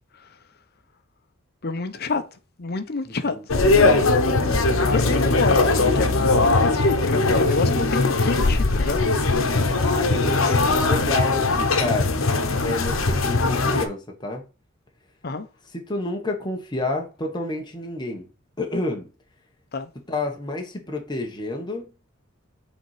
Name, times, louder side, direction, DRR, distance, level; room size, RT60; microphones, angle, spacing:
voice 1, 1.6-2.2 2.6-4.0 4.8-9.1 15.2-15.5 19.7-19.9, left 3 dB, 50° left, 0.8 m, -28 dB
voice 2, 3.1-3.4 9.8-14.4 15.7-18.3 18.6-19.1 20.1-21.9, left 2 dB, 20° left, 1.2 m, -29 dB
sound 1, 3.5-13.8, left 3 dB, 75° left, 1.0 m, -20 dB
7.0 x 4.1 x 4.9 m
head